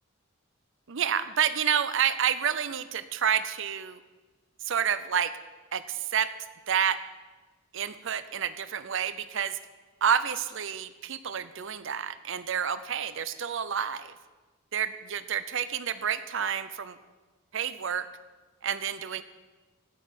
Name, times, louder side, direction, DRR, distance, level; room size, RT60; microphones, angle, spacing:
voice 1, 0.9-4.0 4.6-5.3 5.7-6.3 6.7-7.0 7.7-9.6 10.0-14.1 14.7-17.0 17.5-18.1 18.6-19.2, right 8 dB, 60° right, 14 dB, 0.6 m, -29 dB
16.0 x 6.2 x 7.1 m, 1.3 s
head